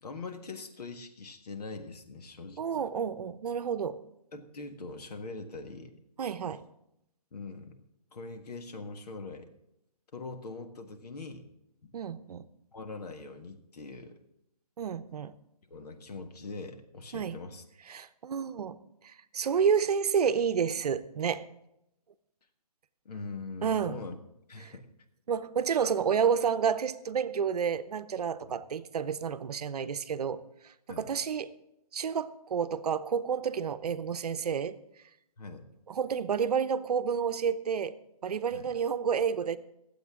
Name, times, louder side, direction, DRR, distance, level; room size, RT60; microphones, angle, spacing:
voice 1, 0.0-2.8 4.3-6.0 7.3-7.7 8.1-9.5 10.1-11.4 11.8-12.0 12.7-14.2 15.7-17.6 23.1-24.2 24.5-24.9 28.5-28.6 30.9-31.1 35.4-35.7 38.5-38.7, left 3 dB, 75° left, 6 dB, 1.7 m, -42 dB
voice 2, 2.6-4.0 6.2-6.6 11.9-12.5 14.8-15.3 17.1-17.4 17.9-18.8 19.0-21.5 23.6-24.0 24.6-24.7 25.3-31.5 31.9-34.8 35.9-38.0 38.2-39.6, right 7 dB, 75° right, 13 dB, 0.8 m, -30 dB
22.5 x 7.9 x 3.7 m, 0.84 s
hypercardioid pair, 150°, 20 cm